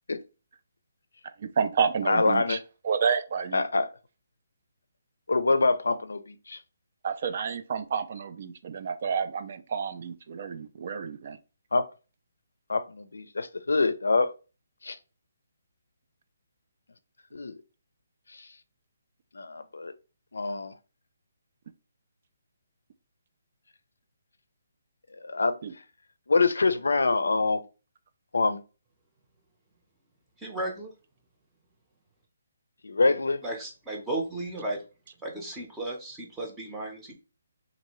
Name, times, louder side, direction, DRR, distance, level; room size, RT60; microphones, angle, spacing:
voice 1, 1.4-2.6 2.8-3.6 7.0-11.4 25.6-25.7, right 6 dB, 45° right, 0.3 m, -29 dB
voice 2, 2.1-2.6 3.5-3.9 5.3-6.6 11.7-11.9 12.7-14.3 14.8-15.0 17.3-17.6 18.3-18.5 19.3-19.9 20.3-20.7 25.2-25.6 26.3-27.6 28.3-28.6 32.8-33.4, left 3 dB, 90° left, 0.4 m, -25 dB
voice 3, 30.4-30.9 33.4-34.8 35.2-37.1, right 1 dB, 10° right, 0.7 m, -34 dB
2.6 x 2.5 x 3.0 m
hypercardioid pair, 160°, 0 cm